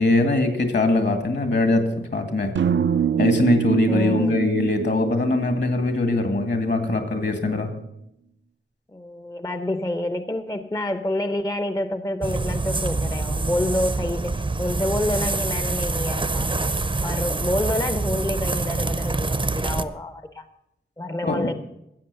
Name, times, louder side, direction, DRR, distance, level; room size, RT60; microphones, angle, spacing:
voice 1, 0.0-2.5 3.2-7.7 21.2-21.5, left 2 dB, 60° left, 7 dB, 2.1 m, -22 dB
sound 1, 2.6-6.7, right 8 dB, 65° right, 0.5 m, -25 dB
voice 2, 3.9-4.3 8.9-16.7 17.0-20.4 21.0-21.5, left 1 dB, 15° left, 10 dB, 0.7 m, -28 dB
sound 2, 12.2-19.8, right 3 dB, 25° right, 0.6 m, -26 dB
13.5 x 8.2 x 6.8 m, 0.80 s
wide cardioid pair, 95°, 21 cm